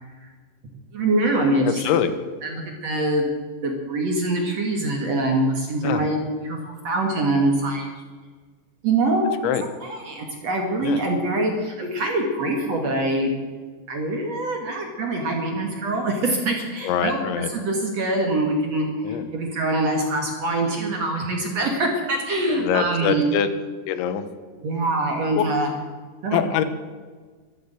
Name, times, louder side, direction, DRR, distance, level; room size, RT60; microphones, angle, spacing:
voice 1, 0.9-1.8 2.4-3.3 3.6-7.9 8.8-9.3 9.8-13.3 13.9-17.2 17.5-23.2 24.6-25.7 26.2-26.4, right 2 dB, 45° right, 1 dB, 2.5 m, -24 dB
voice 2, 1.7-2.1 5.8-6.1 9.4-9.6 10.8-11.0 16.8-17.5 19.0-19.3 22.6-23.5 23.9-24.2 25.4-25.5 26.3-26.6, left 9 dB, 90° left, 10 dB, 3.5 m, -23 dB
13.0 x 13.0 x 8.2 m, 1.4 s
omnidirectional pair, 5.1 m